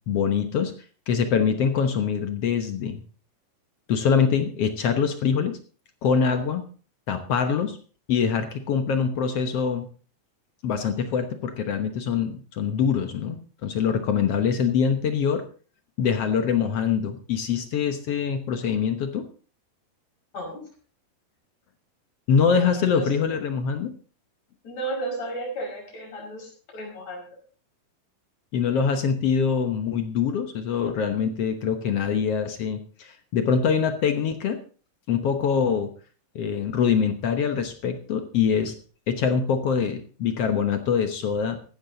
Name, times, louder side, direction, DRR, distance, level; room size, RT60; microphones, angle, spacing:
voice 1, 0.1-0.7 1.1-3.0 3.9-5.6 6.0-6.6 7.1-7.8 8.1-9.9 10.6-15.4 16.0-19.3 22.3-23.9 28.5-34.6 35.1-35.9 36.3-38.7 39.1-41.6, left 6 dB, 65° left, 7 dB, 1.5 m, -24 dB
voice 2, 22.5-23.1 24.6-27.3, right 1 dB, 50° left, 0 dB, 6.7 m, -33 dB
15.0 x 12.5 x 4.0 m, 0.39 s
omnidirectional pair, 4.1 m